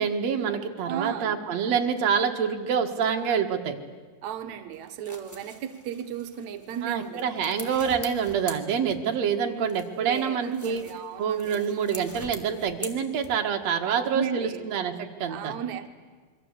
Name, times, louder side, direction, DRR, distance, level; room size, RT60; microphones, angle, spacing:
voice 1, 0.0-3.8 6.8-10.8 11.2-15.6, right 7 dB, 55° right, 4 dB, 2.3 m, -26 dB
voice 2, 0.9-1.4 4.2-7.3 10.0-11.6 13.9-14.7 15.2-15.9, right 9 dB, 80° right, 7 dB, 1.6 m, -35 dB
sound 1, 4.7-9.3 9.6-13.6, equal, 10° left, 1.0 m, -44 dB
27.5 x 23.0 x 8.3 m, 1.5 s
omnidirectional pair, 4.8 m